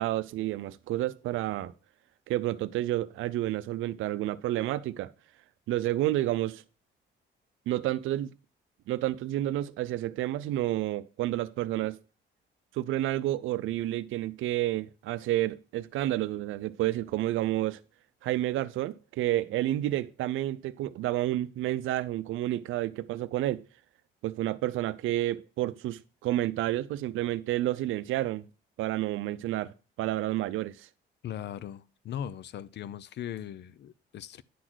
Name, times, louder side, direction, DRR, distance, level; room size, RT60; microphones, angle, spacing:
voice 1, 0.0-1.7 2.3-5.1 5.7-6.6 7.7-8.3 8.9-12.0 12.7-17.8 18.2-23.6 24.2-28.4 28.8-30.9, right 14 dB, 85° right, 0.6 m, -30 dB
voice 2, 31.2-34.4, left 10 dB, 60° left, 0.5 m, -39 dB
10.0 x 4.0 x 6.2 m
cardioid pair, 90°, 20 cm